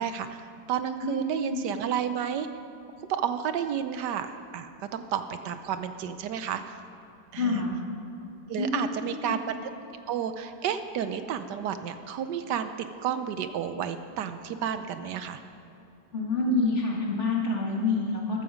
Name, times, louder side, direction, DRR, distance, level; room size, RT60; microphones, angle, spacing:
voice 1, 0.0-2.5 3.1-6.6 7.3-7.6 8.5-9.6 10.1-12.7 13.0-15.4, right 8 dB, 75° right, 9 dB, 1.2 m, -31 dB
voice 2, 1.0-1.6 7.4-7.7 8.6-9.4 16.1-18.4, left 3 dB, 40° left, -2 dB, 2.2 m, -28 dB
14.5 x 12.5 x 5.1 m, 2.8 s
omnidirectional pair, 1.9 m